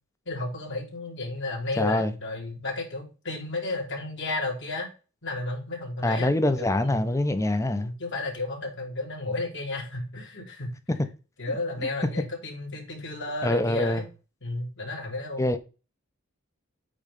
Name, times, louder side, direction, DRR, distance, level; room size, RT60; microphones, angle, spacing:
voice 1, 0.2-4.9 5.2-6.3 6.6-7.1 7.7-10.7 11.4-14.0 14.4-15.5, left 2 dB, 55° left, 3.1 m, -33 dB
voice 2, 1.8-2.1 6.0-7.9 13.4-14.0 15.4-15.6, left 1 dB, 15° left, 0.8 m, -24 dB
8.7 x 3.3 x 5.3 m
head